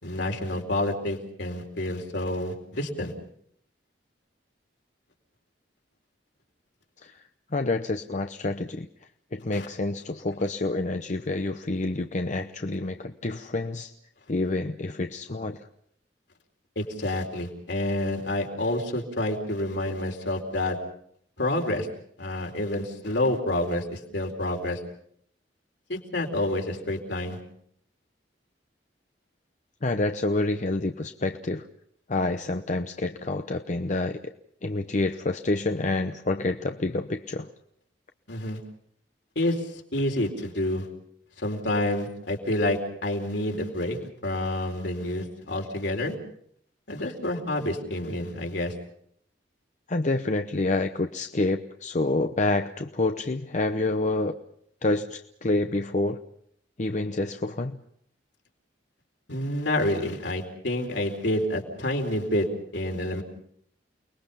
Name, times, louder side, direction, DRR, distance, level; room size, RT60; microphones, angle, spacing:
voice 1, 0.0-3.1 9.5-9.7 16.8-20.8 21.4-21.9 22.2-24.8 25.9-27.4 38.3-38.6 39.4-40.9 41.4-46.1 46.9-48.7 59.3-62.5 62.7-63.2, left 1 dB, 70° left, 2 dB, 4.3 m, -28 dB
voice 2, 7.5-8.9 9.3-13.9 14.3-15.7 29.8-31.7 32.1-34.3 34.6-37.5 47.0-47.1 49.9-54.4 54.8-56.2 56.8-57.8, left 2 dB, 40° left, 7 dB, 0.8 m, -28 dB
29.5 x 21.0 x 5.6 m, 0.67 s
head